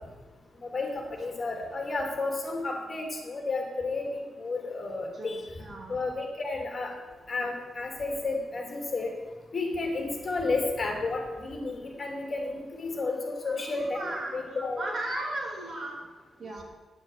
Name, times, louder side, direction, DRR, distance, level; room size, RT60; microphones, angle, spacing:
voice 1, 0.7-5.4 5.9-6.9 7.3-9.1 9.5-14.8, left 3 dB, 35° left, 2 dB, 3.0 m, -32 dB
voice 2, 5.6-5.9 12.8-13.0 13.4-16.0 16.4-16.6, right 1 dB, 45° right, 0 dB, 2.9 m, -36 dB
9.5 x 9.4 x 8.5 m, 1.3 s
wide cardioid pair, 120°, 0 cm